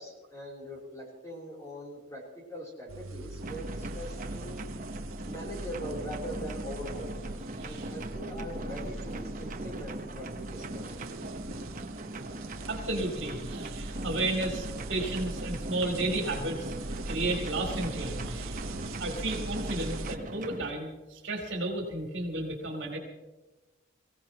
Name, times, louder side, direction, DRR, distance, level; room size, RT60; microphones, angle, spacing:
voice 1, 0.0-4.6 5.2-10.9, equal, 15° left, -3 dB, 3.5 m, -42 dB
sound 1, 2.9-20.2, right 2 dB, 90° right, 0.9 m, -41 dB
sound 2, 3.4-20.7, right 1 dB, 40° right, 1.0 m, -40 dB
voice 2, 7.6-7.9 12.7-16.7 17.1-18.7 19.0-23.0, right 2 dB, 65° right, 1 dB, 3.4 m, -33 dB
23.0 x 16.5 x 3.0 m, 1.1 s
head